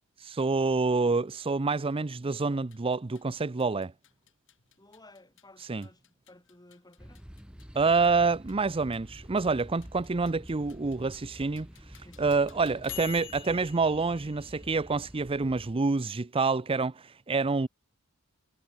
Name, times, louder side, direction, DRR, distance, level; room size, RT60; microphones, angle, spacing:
voice 1, 0.2-3.9 5.7-5.8 7.7-17.7, right 4 dB, 25° right, 0.5 m, -27 dB
sound 1, 2.6-15.3, left 13 dB, 60° left, 1.7 m, -51 dB
voice 2, 4.8-7.2 12.0-12.9, left 1 dB, 20° left, 4.4 m, -56 dB
sound 2, 7.0-15.7, equal, 5° right, 1.2 m, -48 dB
head